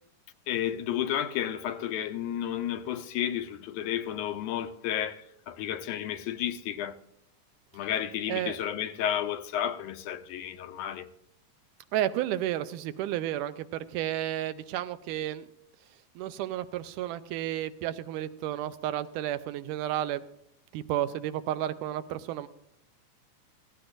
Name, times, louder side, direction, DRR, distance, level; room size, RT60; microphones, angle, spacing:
voice 1, 0.5-7.0 7.7-11.1, left 10 dB, 80° left, 2.1 m, -32 dB
voice 2, 8.3-8.6 11.9-15.5 16.2-20.2 20.7-22.5, right 12 dB, 80° right, 2.1 m, -32 dB
17.0 x 16.0 x 2.6 m
omnidirectional pair, 3.7 m